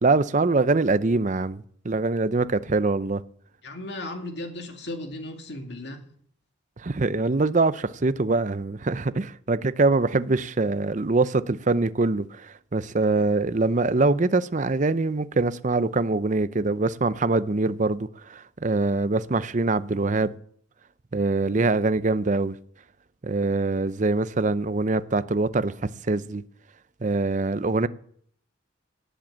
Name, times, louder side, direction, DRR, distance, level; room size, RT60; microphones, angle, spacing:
voice 1, 0.0-3.2 6.8-20.3 21.1-22.6 23.2-26.4 27.0-27.9, right 3 dB, 40° right, 0.6 m, -24 dB
voice 2, 3.6-6.0, left 1 dB, 55° left, 2.3 m, -36 dB
18.0 x 7.8 x 7.4 m
head